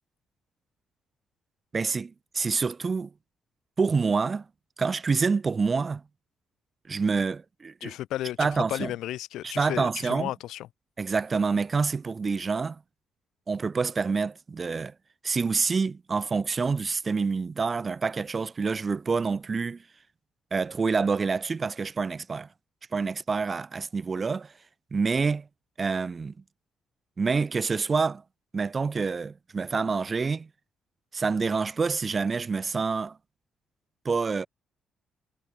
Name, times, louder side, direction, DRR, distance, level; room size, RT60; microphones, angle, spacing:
voice 1, 1.7-3.1 3.8-4.5 4.8-6.0 6.9-7.9 8.4-8.9 9.4-10.3 11.0-12.8 13.5-14.9 15.2-19.8 20.5-22.5 22.9-24.5 24.9-25.5 25.8-26.3 27.2-28.2 28.5-30.5 31.1-33.2 34.0-34.5, right 4 dB, 35° right, 2.5 m, -27 dB
voice 2, 7.8-10.7, left 14 dB, 85° left, 2.3 m, -33 dB
cardioid pair, 90°, 0 cm